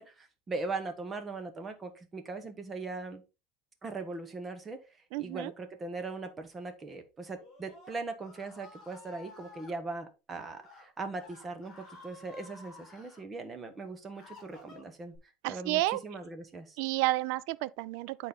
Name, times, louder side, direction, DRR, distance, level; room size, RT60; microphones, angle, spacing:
voice 1, 0.0-3.2 3.8-4.8 5.2-16.8, right 3 dB, 15° right, 1.1 m, -40 dB
voice 2, 5.1-5.5 15.4-16.0 16.8-18.3, right 18 dB, 60° right, 0.4 m, -31 dB
Screaming, 7.3-9.7 10.5-10.8 11.2-13.2 13.8-15.2, left 3 dB, 25° left, 3.8 m, -53 dB
9.3 x 4.1 x 4.1 m
cardioid pair, 160°, 0 cm